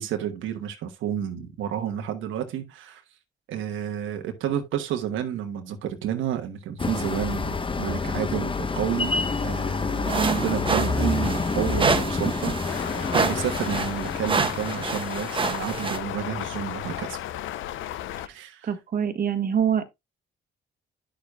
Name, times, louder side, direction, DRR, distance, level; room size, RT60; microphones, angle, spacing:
voice 1, 0.0-3.0 3.5-9.1 9.4-12.9 13.1-17.2 18.3-18.7, right 10 dB, 85° right, 1.2 m, -30 dB
sound 1, 6.8-15.1, left 4 dB, 25° left, 0.8 m, -28 dB
sound 2, 10.1-16.0, right 4 dB, 25° right, 1.2 m, -28 dB
voice 2, 10.1-10.5 18.6-19.8, right 8 dB, 45° right, 1.3 m, -25 dB
sound 3, 12.7-18.3, left 12 dB, 80° left, 0.6 m, -34 dB
10.0 x 6.8 x 2.3 m
cardioid pair, 90°, 20 cm